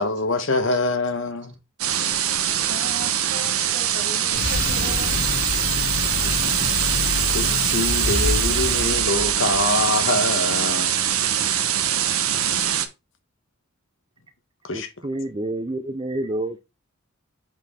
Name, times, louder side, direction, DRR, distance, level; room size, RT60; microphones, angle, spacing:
voice 1, 0.0-1.5 6.2-6.7 7.3-11.0 14.6-14.9, left 2 dB, 60° left, 1.1 m, -25 dB
sound 1, 1.8-12.9, right 9 dB, 85° right, 0.9 m, -23 dB
voice 2, 2.5-5.5, right 3 dB, 55° right, 1.3 m, -38 dB
sound 2, 4.3-9.8, left 1 dB, 35° left, 2.5 m, -26 dB
voice 3, 14.7-16.6, right 1 dB, 20° right, 0.5 m, -28 dB
8.0 x 4.3 x 3.6 m
head